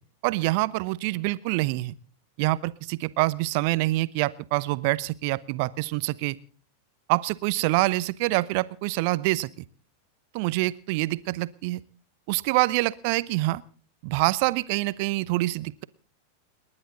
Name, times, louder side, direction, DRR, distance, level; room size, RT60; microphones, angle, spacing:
voice 1, 0.2-1.9 2.4-6.4 7.1-9.7 10.3-11.8 12.3-13.6 14.0-15.8, right 20 dB, 45° right, 18 dB, 0.8 m, -26 dB
30.0 x 11.0 x 3.9 m, 0.41 s
figure-of-eight pair, 90°, 0 cm